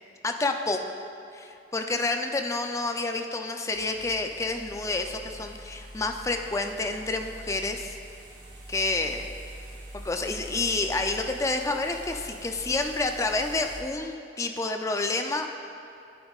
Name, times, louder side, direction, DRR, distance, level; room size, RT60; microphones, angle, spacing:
voice 1, 0.2-0.9 1.3-8.0 8.7-9.3 9.9-15.5, left 3 dB, 15° left, 5 dB, 0.4 m, -29 dB
sound 1, 3.7-13.8, equal, 45° right, 1.8 m, -44 dB
11.0 x 8.7 x 2.4 m, 2.7 s
head